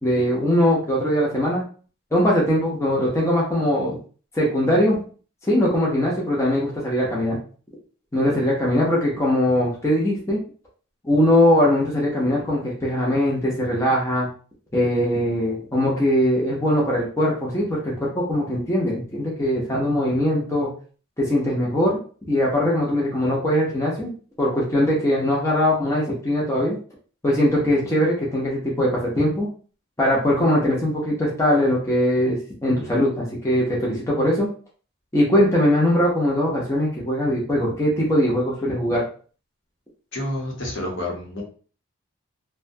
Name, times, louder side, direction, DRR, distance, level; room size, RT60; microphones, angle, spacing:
voice 1, 0.0-1.6 2.1-4.0 4.3-5.0 5.4-7.4 8.1-10.4 11.0-14.3 14.7-20.7 21.2-22.0 22.3-24.1 24.4-26.8 27.2-29.5 30.0-34.5 35.1-39.0, left 1 dB, 15° left, -5 dB, 0.6 m, -21 dB
voice 2, 40.1-41.4, left 1 dB, 60° left, -2 dB, 0.9 m, -29 dB
2.6 x 2.2 x 2.6 m, 0.40 s
head